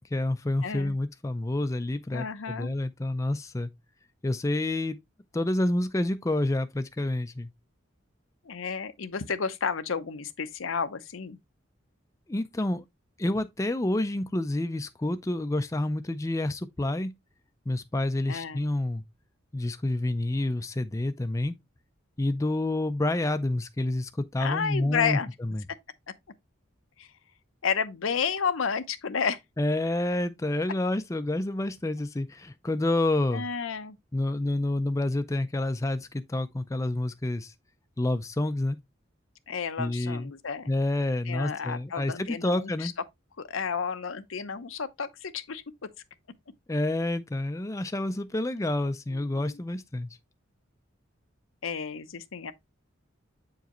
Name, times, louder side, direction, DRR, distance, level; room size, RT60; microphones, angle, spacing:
voice 1, 0.1-3.7 4.2-5.0 5.3-7.5 12.3-12.8 13.2-17.1 17.7-19.0 19.5-21.5 22.2-25.6 29.6-33.5 34.1-37.5 38.0-38.8 39.8-40.3 40.7-42.9 46.7-50.2, left 1 dB, 15° left, 0.4 m, -28 dB
voice 2, 0.6-0.9 2.1-2.7 8.5-11.4 18.3-18.6 24.4-25.3 27.0-27.1 27.6-29.4 33.3-34.0 39.5-40.7 41.3-42.9 43.4-45.6 49.3-49.6 51.6-52.5, left 6 dB, 85° left, 0.7 m, -31 dB
7.9 x 4.8 x 3.0 m
head